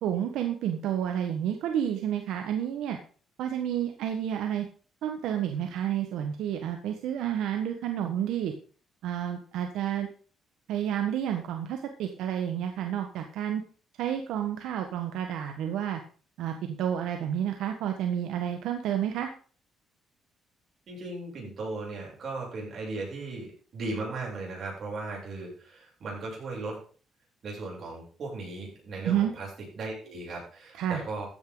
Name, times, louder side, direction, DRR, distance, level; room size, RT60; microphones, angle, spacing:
voice 1, 0.0-3.0 3.4-4.7 5.0-8.5 9.0-10.1 10.7-13.6 14.0-16.0 16.4-19.3 29.0-29.3 30.7-31.0, right 10 dB, 85° right, 5 dB, 1.4 m, -30 dB
voice 2, 20.9-23.5 23.7-26.8 27.4-29.5 29.7-31.3, right 3 dB, 50° right, -2 dB, 7.7 m, -37 dB
14.0 x 9.7 x 4.0 m, 0.41 s
cardioid pair, 110°, 0 cm